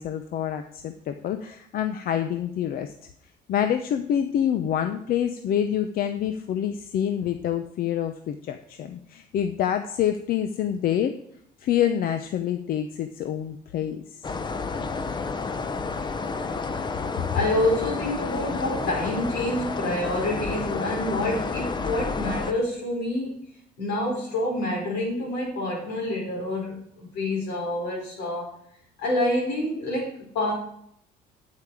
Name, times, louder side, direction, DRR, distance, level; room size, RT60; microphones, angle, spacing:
voice 1, 0.0-2.9 3.5-11.2 11.6-14.2, left 9 dB, 60° left, 8 dB, 0.7 m, -27 dB
sound 1, 14.2-22.5, left 4 dB, 25° left, 0.8 m, -30 dB
voice 2, 17.3-23.4 23.8-28.5 29.0-30.5, left 1 dB, 85° left, -1 dB, 5.0 m, -27 dB
8.6 x 8.3 x 4.9 m, 0.69 s
cardioid pair, 110°, 17 cm